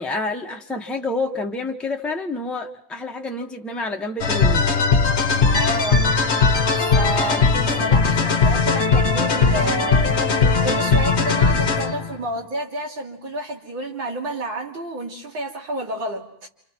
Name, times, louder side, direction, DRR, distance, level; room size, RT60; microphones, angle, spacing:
voice 1, 0.0-4.7, left 2 dB, ahead, 1 dB, 1.2 m, -28 dB
sound 1, 4.2-12.1, left 4 dB, 40° left, 1.4 m, -19 dB
voice 2, 5.5-6.2 6.8-10.2 10.6-16.5, right 1 dB, 85° right, -2 dB, 4.0 m, -29 dB
29.0 x 28.0 x 4.6 m, 0.72 s
omnidirectional pair, 2.0 m